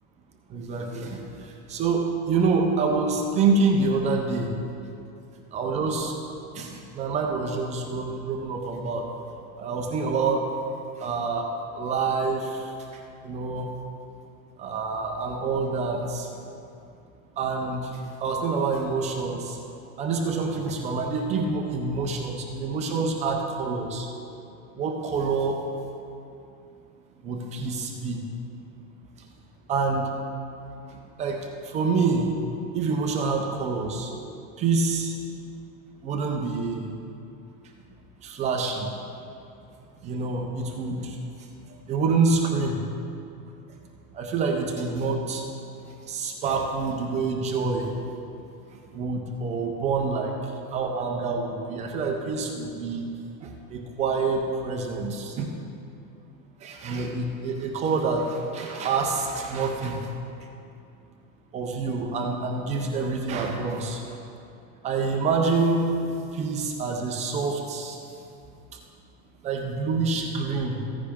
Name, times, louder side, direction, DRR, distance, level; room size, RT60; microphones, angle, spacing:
voice 1, 0.5-4.5 5.5-6.1 6.5-9.1 9.6-10.5 11.0-11.5 11.7-13.7 14.6-16.3 17.4-19.6 20.0-24.1 24.8-25.6 27.2-28.2 29.7-30.1 30.9-32.3 32.7-34.1 34.6-35.1 36.0-36.9 38.2-38.9 40.0-41.2 41.9-42.8 44.1-45.4 45.9-47.9 48.7-50.3 50.7-53.1 53.4-55.6 56.6-60.1 61.5-64.2 64.8-65.9 66.3-68.0 69.4-70.8, right 4 dB, 15° right, 1 dB, 0.4 m, -27 dB
15.0 x 9.8 x 3.5 m, 2.6 s
supercardioid pair, 160°, 47 cm